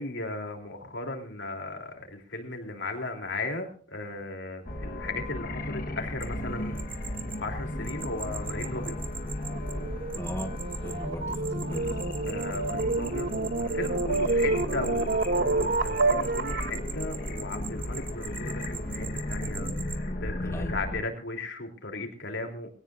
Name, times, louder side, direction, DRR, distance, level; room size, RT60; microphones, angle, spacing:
voice 1, 0.0-6.9 7.4-9.0 12.3-22.7, left 2 dB, 80° left, 3.3 m, -36 dB
sound 1, 4.6-21.0, left 1 dB, 50° left, 1.3 m, -35 dB
sound 2, 6.2-20.0, right 6 dB, 30° right, 1.2 m, -43 dB
sound 3, 9.5-16.8, right 3 dB, 60° right, 1.0 m, -29 dB
voice 2, 10.2-11.9 20.4-20.8, equal, 15° left, 1.0 m, -38 dB
22.5 x 17.0 x 2.6 m
head